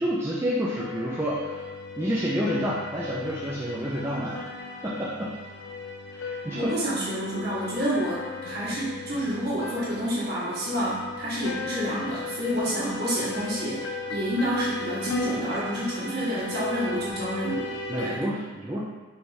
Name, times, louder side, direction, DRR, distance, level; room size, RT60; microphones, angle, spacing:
voice 1, 0.0-1.6 2.0-4.4 4.8-5.3 6.1-6.7 17.9-18.8, equal, 10° right, -7 dB, 0.4 m, -29 dB
sound 1, 0.8-18.1, left 3 dB, 65° left, 0.4 m, -37 dB
voice 2, 6.5-18.2, equal, 50° right, -8 dB, 1.3 m, -29 dB
4.6 x 3.3 x 2.7 m, 1.3 s
head